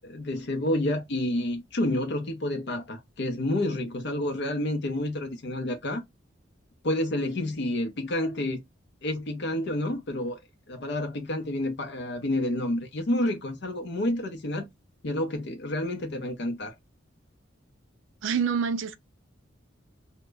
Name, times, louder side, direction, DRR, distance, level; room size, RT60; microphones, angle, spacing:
voice 1, 0.0-6.0 6.8-8.6 9.0-10.4 10.7-14.7 15.0-16.7, left 1 dB, 60° left, 0.5 m, -29 dB
voice 2, 18.2-19.0, right 6 dB, 75° right, 0.4 m, -26 dB
2.1 x 2.0 x 3.2 m
head